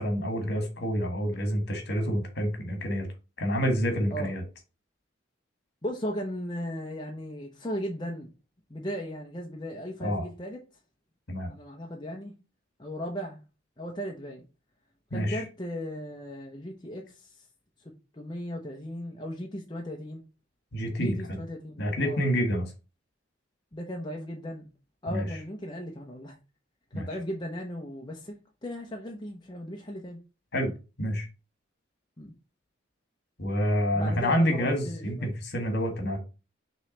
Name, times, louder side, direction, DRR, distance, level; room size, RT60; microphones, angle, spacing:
voice 1, 0.0-3.1 3.4-4.4 10.0-10.2 11.3-11.5 15.1-15.4 20.7-21.4 21.8-22.7 25.1-25.4 26.9-27.1 30.5-30.7 31.0-31.3 33.4-36.2, equal, 55° left, 1.7 m, -28 dB
voice 2, 5.8-8.3 8.7-10.6 11.5-12.3 12.8-13.4 13.8-14.4 15.1-17.3 18.1-20.2 21.0-22.2 23.7-24.7 25.0-26.4 26.9-28.4 28.6-30.2 32.2-32.3 33.9-35.3, equal, 25° left, 0.9 m, -36 dB
6.2 x 3.3 x 5.2 m
head